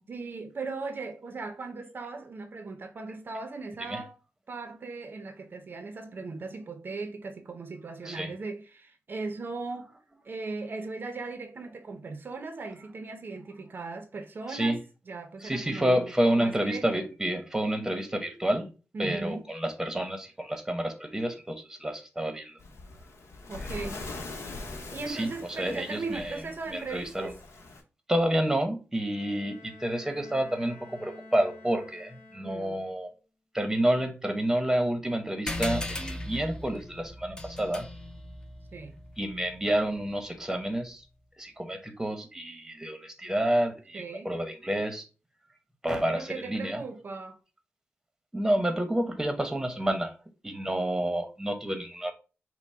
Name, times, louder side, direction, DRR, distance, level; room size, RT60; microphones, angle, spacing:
voice 1, 0.1-4.2 4.5-9.9 10.2-17.0 18.9-19.5 23.5-24.0 24.9-27.3 32.4-32.8 38.7-39.0 43.9-44.3 46.1-47.4, right 3 dB, 45° right, 0.5 m, -38 dB
voice 2, 15.4-18.7 19.0-22.6 25.1-25.3 25.6-26.4 26.7-27.3 28.1-33.1 33.5-37.9 39.2-41.0 41.4-45.1 45.8-46.8 48.3-50.1 50.4-52.1, right 1 dB, 10° right, 0.8 m, -29 dB
Waves surf, 22.6-27.8, left 2 dB, 80° left, 0.9 m, -42 dB
Bowed string instrument, 29.0-32.9, left 2 dB, 40° left, 1.5 m, -50 dB
sound 1, 35.5-40.4, left 2 dB, 15° left, 0.6 m, -38 dB
5.8 x 2.1 x 4.2 m
wide cardioid pair, 130°, 5 cm